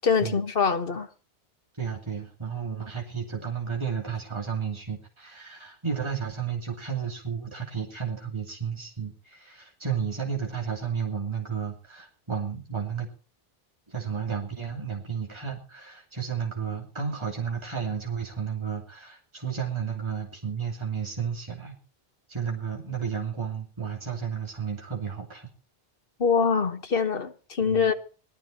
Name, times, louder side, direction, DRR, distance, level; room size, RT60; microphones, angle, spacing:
voice 1, 0.0-1.1 26.2-27.9, left 6 dB, 60° left, 1.4 m, -24 dB
voice 2, 1.8-13.1 13.9-21.8 22.3-25.5 27.6-27.9, right 7 dB, 25° right, 2.9 m, -32 dB
18.5 x 13.0 x 4.3 m
omnidirectional pair, 1.1 m